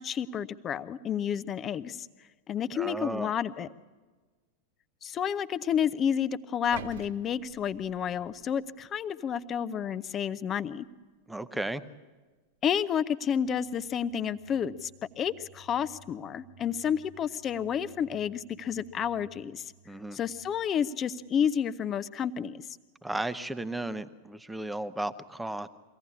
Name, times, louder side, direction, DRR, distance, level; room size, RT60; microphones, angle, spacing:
voice 1, 0.0-2.1 2.5-3.7 5.0-10.9 12.6-14.9 15.2-19.7 20.1-22.7, left 8 dB, 25° left, 16 dB, 0.7 m, -30 dB
voice 2, 2.8-3.3 11.3-11.8 19.9-20.2 23.0-25.7, right 1 dB, 5° right, 12 dB, 0.9 m, -34 dB
sound 1, 6.7-8.9 9.4-9.5, right 5 dB, 60° right, 1.0 m, -47 dB
sound 2, 13.4-21.2, right 1 dB, 85° right, 1.3 m, -58 dB
23.5 x 16.5 x 8.6 m, 1.3 s
figure-of-eight pair, 90°, 0 cm